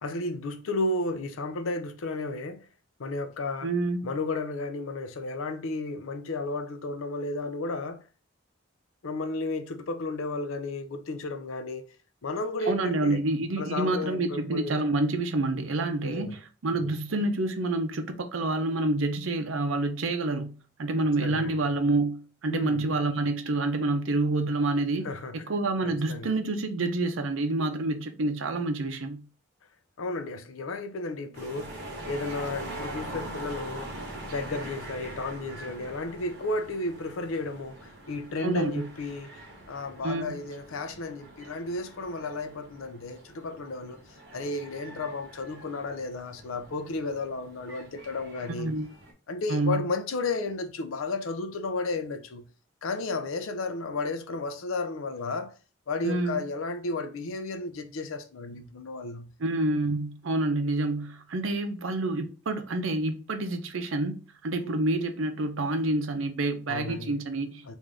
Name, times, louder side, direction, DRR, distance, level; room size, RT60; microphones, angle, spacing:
voice 1, 0.0-2.7 3.0-3.7 4.0-8.0 9.0-11.8 12.2-13.2 13.6-14.8 16.0-16.3 16.7-16.9 21.2-21.6 22.5-22.8 25.0-25.4 25.8-26.3 30.0-31.8 32.1-34.0 34.3-39.4 39.7-44.0 44.3-48.7 49.3-52.5 52.8-55.5 55.9-59.3 64.6-64.7 66.7-67.2 67.6-67.7, left 2 dB, 85° left, 0.5 m, -33 dB
voice 2, 3.6-4.1 12.7-20.5 20.8-25.1 25.5-29.2 38.4-38.9 40.0-40.4 48.5-48.9 49.5-49.8 56.0-56.4 59.4-67.8, right 2 dB, 75° right, 0.6 m, -28 dB
sound 1, 31.3-49.1, right 1 dB, 55° right, 1.0 m, -43 dB
3.6 x 2.6 x 3.2 m
head